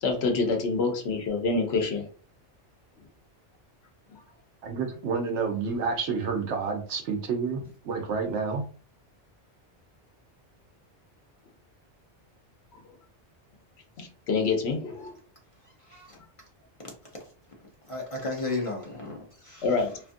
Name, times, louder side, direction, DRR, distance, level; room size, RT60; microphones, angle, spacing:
voice 1, 0.0-2.1 14.0-15.1 19.6-20.0, left 4 dB, 70° left, 0.9 m, -26 dB
voice 2, 4.6-8.6, right 5 dB, 80° right, 1.0 m, -29 dB
voice 3, 17.9-19.6, left 2 dB, 40° left, 0.5 m, -33 dB
2.7 x 2.4 x 2.5 m
omnidirectional pair, 1.2 m